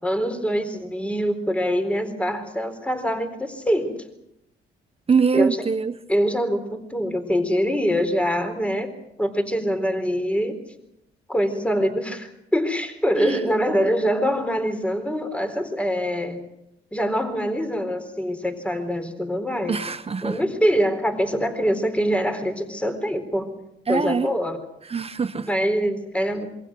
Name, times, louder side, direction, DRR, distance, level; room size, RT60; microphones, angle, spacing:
voice 1, 0.0-4.0 5.3-5.6 6.1-8.9 9.2-10.6 11.3-16.4 16.9-19.8 20.2-23.5 23.9-24.6 25.5-26.5, equal, 5° left, 4.0 m, -24 dB
voice 2, 5.1-5.9 13.2-13.6 19.7-20.4 23.9-24.3 24.9-25.5, right 5 dB, 30° right, 1.1 m, -23 dB
27.0 x 23.0 x 6.3 m
cardioid pair, 90°, 20 cm